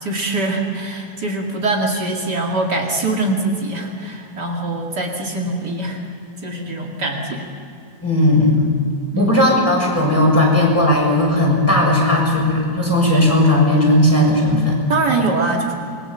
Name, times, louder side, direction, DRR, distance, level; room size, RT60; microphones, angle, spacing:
voice 1, 0.0-6.0 6.4-7.5 9.1-9.4 14.9-15.7, right 2 dB, 60° right, 0 dB, 2.8 m, -23 dB
voice 2, 8.0-8.6 9.2-14.8, left 1 dB, 5° left, -3 dB, 6.6 m, -16 dB
27.0 x 22.0 x 7.4 m, 2.6 s
omnidirectional pair, 2.0 m